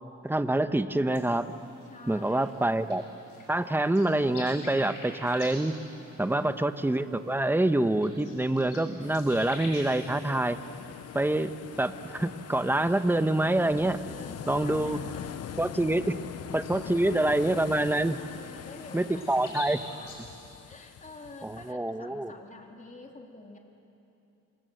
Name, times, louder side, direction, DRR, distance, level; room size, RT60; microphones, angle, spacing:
voice 1, 0.2-1.5 2.1-3.0 3.5-5.7 6.2-10.6 11.1-11.5 11.8-14.0 14.5-15.0 15.6-16.0 16.5-18.2 18.9-19.8 21.4-22.3, right 1 dB, 5° right, 10 dB, 1.0 m, -26 dB
sound 1, 1.1-20.2, left 2 dB, 90° left, 7.2 m, -49 dB
voice 2, 1.9-2.5 6.3-6.6 14.1-15.6 16.0-16.2 16.7-17.4 18.2-20.2 20.6-23.6, left 3 dB, 25° left, 1 dB, 3.3 m, -48 dB
sound 2, 9.0-21.7, left 10 dB, 55° left, 0.7 m, -43 dB
27.5 x 24.0 x 7.8 m, 2.8 s
cardioid pair, 105°, 31 cm